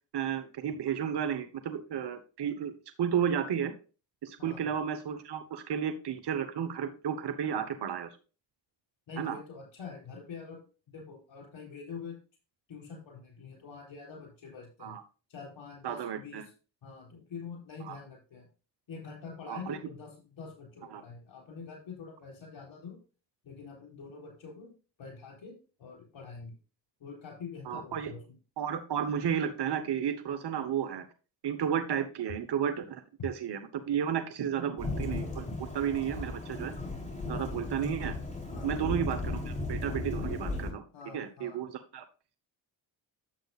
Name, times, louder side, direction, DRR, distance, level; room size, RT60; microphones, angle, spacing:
voice 1, 0.1-2.7 3.0-3.7 4.2-8.1 9.2-9.4 14.8-15.0 15.8-16.4 17.8-18.0 19.5-19.8 20.9-21.0 27.7-28.1 28.6-31.0 31.4-36.7 37.3-38.1 38.6-40.8 41.1-42.0, right 8 dB, 55° right, 8 dB, 1.1 m, -32 dB
voice 2, 9.1-10.6 10.9-12.2 12.7-14.9 15.3-16.5 16.8-18.5 18.9-23.0 23.4-24.7 25.0-26.5 27.0-28.4 33.2-33.3 37.3-37.6 38.5-38.8 40.9-41.6, left 5 dB, 70° left, 0 dB, 4.0 m, -45 dB
Thunderstorm / Rain, 34.8-40.7, left 2 dB, 15° left, 3.8 m, -35 dB
10.0 x 7.8 x 2.4 m, 0.34 s
supercardioid pair, 45°, 47 cm